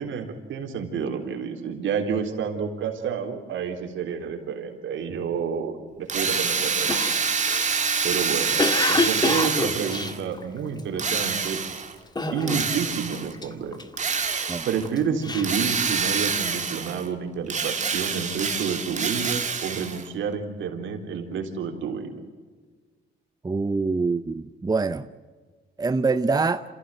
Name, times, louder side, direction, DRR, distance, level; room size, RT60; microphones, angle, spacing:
voice 1, 0.0-7.1 8.0-8.6 8.8-11.6 12.3-13.8 14.7-22.2, right 6 dB, 75° right, 3.7 m, -29 dB
Drill, 6.1-10.2 11.0-11.9 12.5-13.3 14.0-14.9 15.4-17.1 17.5-20.1, right 5 dB, 35° right, 2.4 m, -26 dB
Cough, 6.9-11.0 11.5-11.8 12.2-12.9 13.1-14.3 14.8-16.3, left 3 dB, 20° left, 2.0 m, -27 dB
voice 2, 23.4-25.1 25.8-26.6, right 4 dB, 20° right, 0.8 m, -24 dB
27.5 x 15.5 x 7.8 m
cardioid pair, 90°, 20 cm